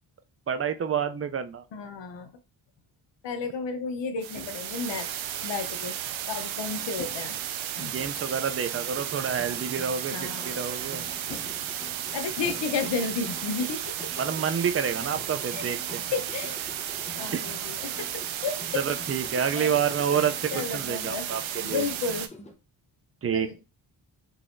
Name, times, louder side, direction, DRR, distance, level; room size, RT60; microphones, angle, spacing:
voice 1, 0.5-1.6 7.8-11.1 14.2-16.0 17.3-17.5 18.7-21.8 23.2-23.6, right 7 dB, 35° right, 0.4 m, -29 dB
voice 2, 1.7-2.3 3.2-6.0 6.3-7.4 10.1-10.7 12.1-14.1 15.5-15.7 16.1-16.6 17.1-18.8 19.5-19.7 20.2-20.3 20.5-22.3 23.3-23.6, left 5 dB, 70° left, 0.8 m, -33 dB
sound 1, 4.2-22.3, right 10 dB, 90° right, 0.5 m, -34 dB
sound 2, 4.3-5.1 6.9-8.7 10.0-10.1 10.4-10.5 11.2-13.6 14.5-14.6 14.9-16.5, left 3 dB, 90° left, 1.2 m, -47 dB
sound 3, 8.7-22.5, left 2 dB, 15° left, 0.6 m, -47 dB
3.9 x 2.8 x 2.5 m
cardioid pair, 95°, 45 cm